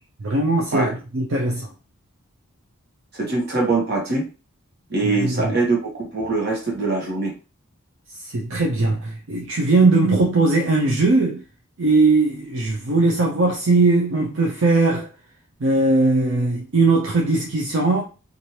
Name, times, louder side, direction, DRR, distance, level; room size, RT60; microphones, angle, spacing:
voice 1, 0.2-1.7 5.0-5.6 8.2-11.4 11.8-15.1 15.6-18.0, right 3 dB, 60° right, 0.5 m, -19 dB
voice 2, 3.1-4.3 4.9-7.3, right 3 dB, 45° right, 1.1 m, -23 dB
3.0 x 2.5 x 2.8 m
head